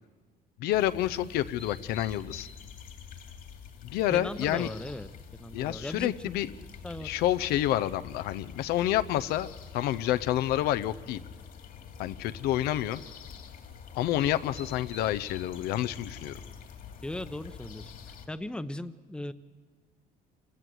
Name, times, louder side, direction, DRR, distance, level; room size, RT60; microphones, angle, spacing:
voice 1, 0.6-2.5 3.8-4.7 5.5-6.5 7.0-9.5 9.7-11.2 12.0-13.0 13.9-16.4, left 13 dB, 90° left, 13 dB, 0.6 m, -28 dB
sound 1, 0.7-18.3, left 7 dB, 70° left, 2.4 m, -46 dB
voice 2, 4.1-5.1 5.4-6.3 6.8-7.1 17.0-19.3, left 1 dB, 5° left, 12 dB, 0.7 m, -38 dB
26.5 x 16.0 x 7.7 m, 1.5 s
cardioid pair, 110°, 16 cm